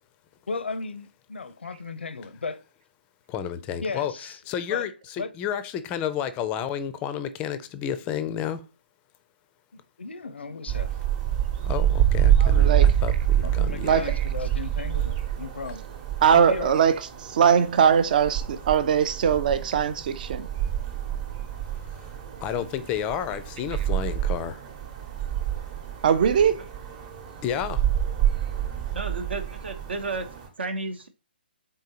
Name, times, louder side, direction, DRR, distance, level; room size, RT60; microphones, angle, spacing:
voice 1, 0.5-2.6 3.8-4.4 4.7-4.9 5.2-5.3 9.7-10.9 13.4-15.9 16.3-16.8, left 4 dB, 85° left, 0.5 m, -35 dB
voice 2, 3.3-4.1 4.5-8.6 11.7-14.0 22.4-24.6 27.4-27.8, left 9 dB, 20° left, 0.4 m, -31 dB
sound 1, 10.7-30.5, right 10 dB, 35° right, 0.9 m, -27 dB
voice 3, 12.4-12.9 13.8-14.1 16.2-16.9 17.3-20.5 26.0-26.6, right 7 dB, 50° right, 0.4 m, -21 dB
voice 4, 28.9-30.3 30.6-31.1, right 3 dB, 75° right, 0.8 m, -32 dB
3.7 x 3.7 x 2.7 m
hypercardioid pair, 145°, 6 cm